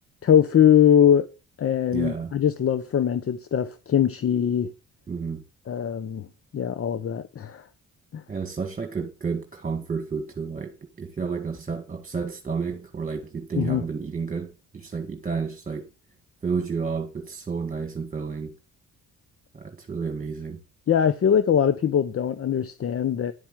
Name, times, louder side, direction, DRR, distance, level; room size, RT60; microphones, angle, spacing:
voice 1, 0.2-1.3 1.6-4.7 5.7-6.3 6.5-7.6 8.1-8.2 13.5-13.8 20.9-23.3, left 9 dB, 50° left, 1.0 m, -21 dB
voice 2, 1.9-2.3 5.1-5.4 8.3-15.9 16.4-18.5 19.5-20.6, right 5 dB, 25° right, 2.0 m, -31 dB
11.5 x 5.8 x 9.0 m
cardioid pair, 90°, 30 cm